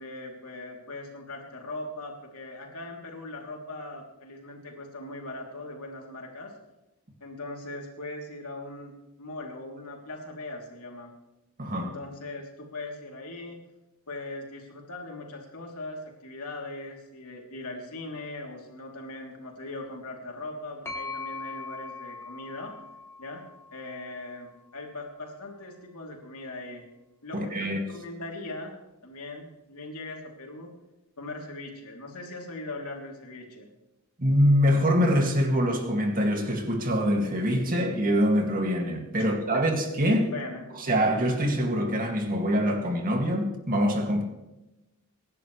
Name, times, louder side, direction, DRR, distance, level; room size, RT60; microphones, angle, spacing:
voice 1, 0.0-6.5 7.2-8.9 9.2-11.1 11.8-13.6 14.1-22.7 23.2-23.4 23.7-26.8 27.2-28.7 29.0-30.7 31.2-33.7 39.2-39.6 40.3-40.6, left 2 dB, 75° left, 0 dB, 3.2 m, -40 dB
voice 2, 11.6-11.9 27.3-27.8 34.2-40.3 40.8-44.2, equal, 40° right, 2 dB, 2.4 m, -24 dB
sound 1, 20.9-24.6, left 4 dB, 10° left, 2.6 m, -41 dB
25.0 x 11.0 x 3.3 m, 0.98 s
head